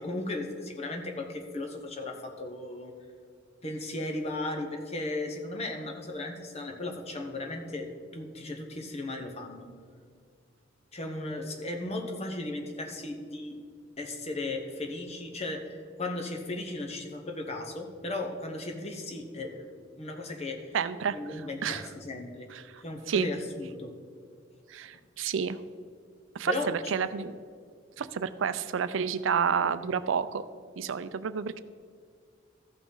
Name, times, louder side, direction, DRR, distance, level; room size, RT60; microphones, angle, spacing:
voice 1, 0.0-2.9 3.6-9.7 10.9-13.6 14.0-19.7 20.0-20.7 21.1-22.5 22.8-23.9 26.5-26.7, left 2 dB, 35° left, 3 dB, 1.0 m, -36 dB
voice 2, 20.7-21.9 22.5-23.3 24.7-25.6 26.3-27.4 28.0-30.4 30.8-31.6, right 6 dB, 70° right, 13 dB, 0.4 m, -30 dB
14.0 x 6.0 x 3.9 m, 2.1 s
head